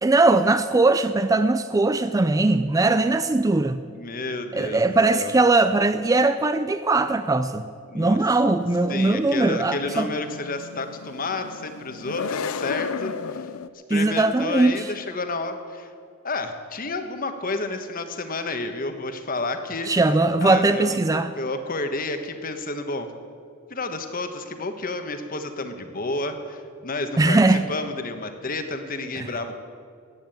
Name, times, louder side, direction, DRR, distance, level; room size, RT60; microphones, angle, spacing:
voice 1, 0.0-3.8 4.5-7.6 7.9-10.1 13.9-14.8 19.9-21.3 27.2-27.6 29.2-29.3, right 2 dB, 15° right, 11 dB, 0.4 m, -20 dB
voice 2, 3.9-4.8 5.1-5.3 7.9-8.2 8.9-13.5 13.9-15.9 16.2-19.9 20.4-23.1 23.7-27.4 27.7-29.6, left 2 dB, 40° left, 8 dB, 1.2 m, -30 dB
sound 1, 8.6-13.7, left 5 dB, 75° left, 0.5 m, -34 dB
14.5 x 9.3 x 9.1 m, 2.3 s
head